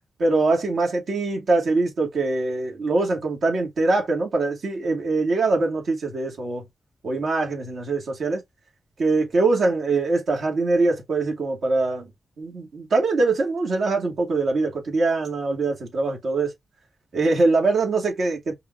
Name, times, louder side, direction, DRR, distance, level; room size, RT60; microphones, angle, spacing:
voice 1, 0.2-6.6 7.0-8.4 9.0-12.1 12.4-16.5 17.1-18.5, right 3 dB, 70° right, 2.3 m, -23 dB
5.4 x 2.9 x 2.7 m
cardioid pair, 85°, 0 cm